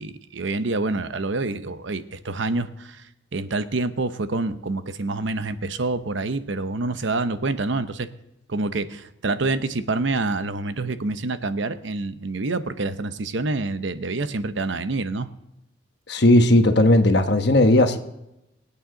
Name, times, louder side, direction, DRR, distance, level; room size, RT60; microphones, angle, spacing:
voice 1, 0.0-3.0 3.3-8.1 8.5-15.3, right 3 dB, 70° right, 11 dB, 0.8 m, -27 dB
voice 2, 16.1-18.0, left 1 dB, 55° left, 7 dB, 1.1 m, -16 dB
25.5 x 8.6 x 3.9 m, 0.90 s
head